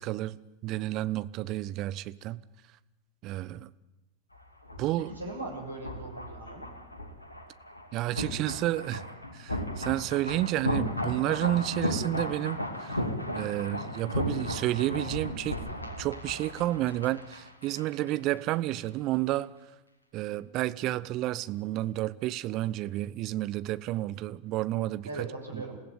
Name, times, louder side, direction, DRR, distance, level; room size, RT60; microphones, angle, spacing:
voice 1, 0.0-2.4 3.2-3.7 4.8-5.1 7.9-9.0 9.3-13.0 13.3-15.6 16.0-19.5 20.1-25.3 25.5-25.6, right 15 dB, 40° right, 0.9 m, -31 dB
sound 1, 4.3-18.1 18.4-18.5, left 1 dB, 80° left, 2.6 m, -35 dB
voice 2, 5.0-6.7 25.0-25.8, right 2 dB, 80° right, 6.7 m, -39 dB
28.0 x 16.0 x 9.5 m
figure-of-eight pair, 90°, 0 cm